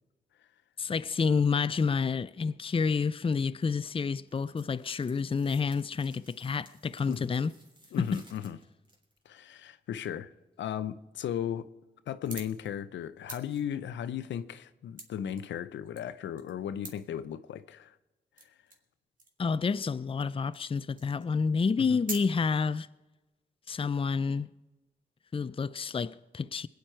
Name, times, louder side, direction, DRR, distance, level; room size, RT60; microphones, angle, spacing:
voice 1, 0.8-7.5 8.0-8.1 19.4-22.9 23.7-24.5 25.3-26.7, left 5 dB, 30° left, 0.5 m, -29 dB
sound 1, 4.3-9.4, right 1 dB, 25° right, 3.3 m, -59 dB
voice 2, 7.9-8.6 9.3-10.3 10.6-11.7 12.1-18.0 21.8-22.0, left 9 dB, 80° left, 0.6 m, -36 dB
sound 2, 12.2-12.7 13.0-15.4 15.7-16.5 16.8-17.0 17.7-17.8 18.4-18.9 19.2-19.5 20.1-20.2 20.5-20.7 21.0-21.4 21.7-22.2, right 2 dB, 45° right, 2.6 m, -44 dB
21.5 x 9.4 x 4.5 m
supercardioid pair, 40°, 19 cm